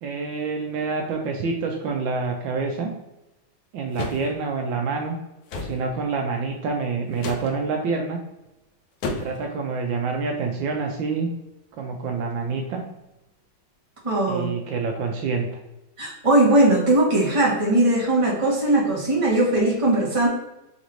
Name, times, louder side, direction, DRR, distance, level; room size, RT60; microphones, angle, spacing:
voice 1, 0.0-2.9 3.7-5.2 5.5-8.2 9.0-11.3 11.8-12.8 14.3-15.6, right 4 dB, 75° right, 2 dB, 1.3 m, -27 dB
sound 1, 3.9-4.3 5.5-5.8 7.2-7.5 9.0-9.4, left 3 dB, 70° left, 0.9 m, -31 dB
voice 2, 14.0-14.5 16.0-20.3, right 1 dB, 20° right, -5 dB, 1.2 m, -19 dB
4.1 x 3.9 x 3.0 m, 0.95 s
omnidirectional pair, 2.2 m